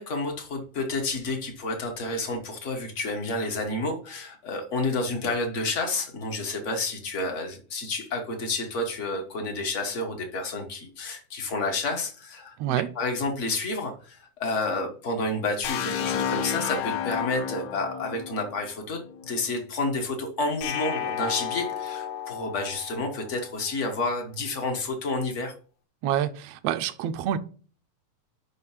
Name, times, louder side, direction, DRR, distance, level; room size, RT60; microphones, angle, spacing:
voice 1, 0.0-25.5, left 2 dB, 55° left, 0.8 m, -30 dB
voice 2, 12.6-12.9 26.0-27.4, right 11 dB, 85° right, 1.4 m, -27 dB
sound 1, 15.6-19.5, left 8 dB, 70° left, 1.8 m, -31 dB
sound 2, 20.6-23.7, left 9 dB, 90° left, 2.6 m, -34 dB
6.2 x 5.6 x 5.6 m
omnidirectional pair, 3.6 m